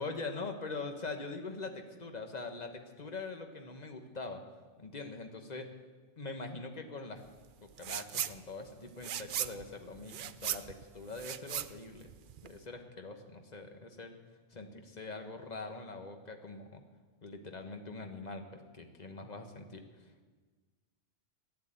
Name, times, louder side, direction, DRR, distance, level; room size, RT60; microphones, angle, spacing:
voice 1, 0.0-1.7 2.0-4.4 4.8-5.7 6.2-7.2 7.6-12.1 12.4-14.1 14.5-16.8 17.2-19.8, left 3 dB, 35° left, 5 dB, 1.4 m, -43 dB
sound 1, 7.8-8.4 8.7-12.6, right 10 dB, 60° right, 0.6 m, -38 dB
12.5 x 10.5 x 9.0 m, 1.4 s
omnidirectional pair, 1.2 m